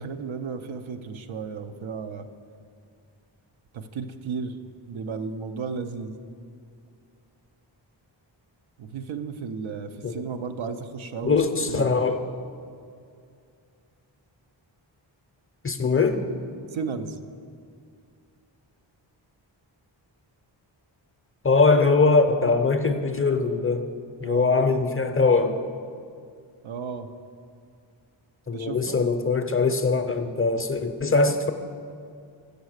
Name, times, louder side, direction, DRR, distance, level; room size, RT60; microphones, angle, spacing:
voice 1, 0.0-2.3 3.7-4.6 4.9-6.2 8.8-11.4 11.7-12.0 16.7-17.2 24.2-24.7 26.6-27.1 28.5-29.1, right 5 dB, 80° right, 8 dB, 0.7 m, -34 dB
voice 2, 11.2-12.2 15.6-16.2 21.4-23.9 24.2-25.6 28.5-31.5, left 4 dB, 30° left, 7 dB, 0.5 m, -22 dB
8.2 x 6.5 x 6.3 m, 2.3 s
wide cardioid pair, 90°, 46 cm